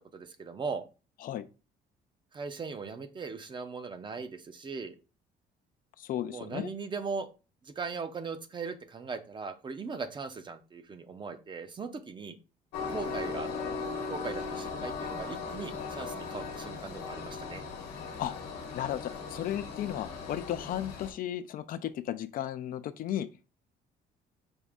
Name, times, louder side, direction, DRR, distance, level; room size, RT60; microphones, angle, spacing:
voice 1, 0.1-0.8 2.3-5.0 6.3-7.3 7.6-12.4 12.9-13.5 14.1-17.6, right 4 dB, 30° right, 0.6 m, -39 dB
voice 2, 6.0-6.7 18.2-18.3 18.7-23.3, left 11 dB, 55° left, 0.4 m, -34 dB
Train, 12.7-21.1, left 5 dB, 80° left, 1.0 m, -38 dB
5.2 x 2.4 x 3.6 m
cardioid pair, 110°, 17 cm